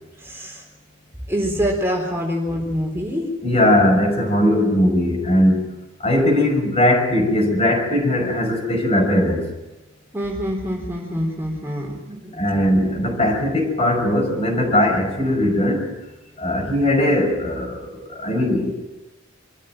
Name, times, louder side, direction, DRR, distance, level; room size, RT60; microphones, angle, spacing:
voice 1, 0.2-0.6 1.3-3.2 10.1-12.4, equal, 10° right, -1 dB, 3.9 m, -25 dB
voice 2, 3.4-9.5 12.3-15.9 16.4-18.7, left 1 dB, 30° left, 3 dB, 5.6 m, -19 dB
25.0 x 15.0 x 9.0 m, 1.0 s
head